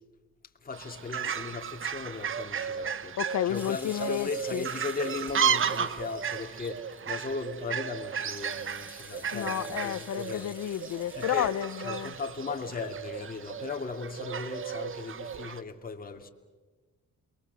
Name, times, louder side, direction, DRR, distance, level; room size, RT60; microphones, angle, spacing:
voice 1, 0.6-3.2 3.5-10.6 11.1-11.5 11.8-16.3, left 4 dB, 30° left, 2.5 m, -37 dB
Fowl, 0.7-15.6, right 7 dB, 45° right, 1.1 m, -34 dB
voice 2, 3.2-4.7 9.3-12.1, left 11 dB, 70° left, 0.9 m, -31 dB
sound 1, 3.5-13.3, left 1 dB, 5° right, 5.0 m, -51 dB
28.5 x 22.0 x 7.9 m
cardioid pair, 90°, 30 cm